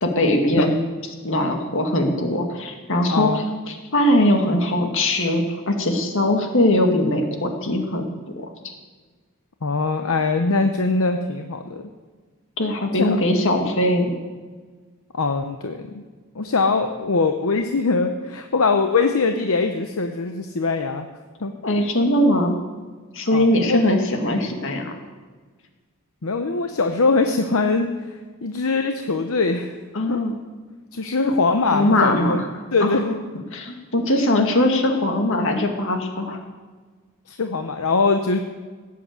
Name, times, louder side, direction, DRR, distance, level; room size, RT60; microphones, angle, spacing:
voice 1, 0.0-0.8 1.2-8.4 12.6-14.1 21.6-22.6 23.1-24.9 29.9-30.3 31.0-31.3 31.7-32.4 32.8-33.0 33.5-36.4, left 1 dB, 60° left, 4 dB, 2.1 m, -21 dB
voice 2, 3.1-3.4 9.6-11.8 13.0-13.2 15.1-16.0 16.4-21.1 21.4-21.5 23.3-24.0 26.2-27.9 28.4-29.7 30.1-30.2 30.9-32.4 32.7-33.2 37.3-38.4, left 3 dB, 75° left, 6 dB, 0.9 m, -22 dB
17.0 x 7.8 x 8.1 m, 1.4 s
head